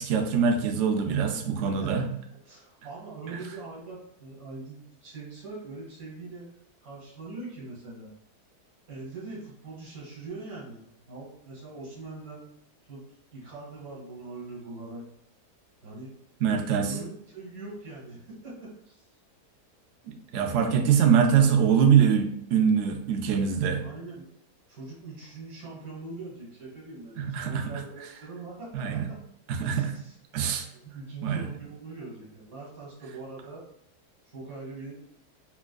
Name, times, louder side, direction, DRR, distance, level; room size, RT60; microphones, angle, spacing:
voice 1, 0.0-2.1 16.4-16.9 20.1-23.8 27.2-27.7 28.7-29.1 29.5-29.9 30.3-30.7 31.2-31.5, right 7 dB, 80° right, 3 dB, 0.6 m, -23 dB
voice 2, 2.4-6.5 6.8-8.1 8.9-12.5 12.8-13.0 13.3-15.0 15.8-16.2 16.6-19.1 23.8-24.3 24.7-29.0 29.6-30.1 30.7-33.6 34.3-35.0, right 3 dB, 60° right, -5 dB, 1.8 m, -42 dB
4.3 x 2.3 x 2.2 m, 0.73 s
omnidirectional pair, 1.8 m